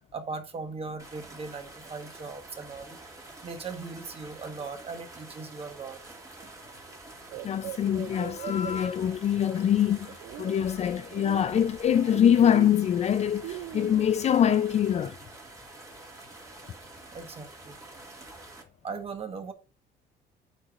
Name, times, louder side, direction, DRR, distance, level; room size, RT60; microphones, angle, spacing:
voice 1, 0.1-3.0 3.4-6.0 17.1-17.8 18.8-19.5, right 4 dB, 35° right, 1.3 m, -39 dB
sound 1, 1.0-18.6, right 2 dB, 20° right, 1.7 m, -48 dB
sound 2, 7.3-9.6 10.0-10.6 11.1-14.2, right 13 dB, 70° right, 0.4 m, -40 dB
voice 2, 7.4-15.2, left 9 dB, 40° left, 0.4 m, -24 dB
8.3 x 4.9 x 2.5 m
cardioid pair, 110°, 17 cm